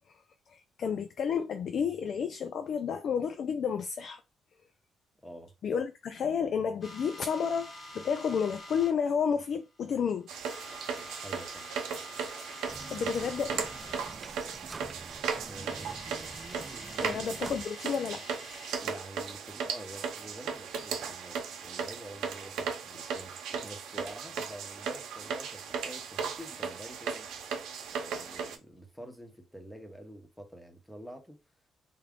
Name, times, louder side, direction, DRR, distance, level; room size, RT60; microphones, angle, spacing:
voice 1, 0.5-4.2 5.6-10.3 12.9-13.7 17.0-18.2, left 7 dB, 60° left, 0.4 m, -31 dB
voice 2, 5.2-5.5 11.2-11.7 15.4-16.2 17.0-17.2 18.8-27.3 27.9-31.4, equal, 5° left, 0.9 m, -47 dB
sound 1, 6.8-8.9 9.7-10.0 10.3-14.2 15.3-15.4 15.5-18.9, left 1 dB, 45° left, 1.1 m, -47 dB
sound 2, 10.3-28.6, right 6 dB, 85° right, 0.7 m, -37 dB
sound 3, 12.7-17.7, right 3 dB, 30° right, 0.3 m, -47 dB
3.6 x 2.2 x 3.6 m
cardioid pair, 90°, 0 cm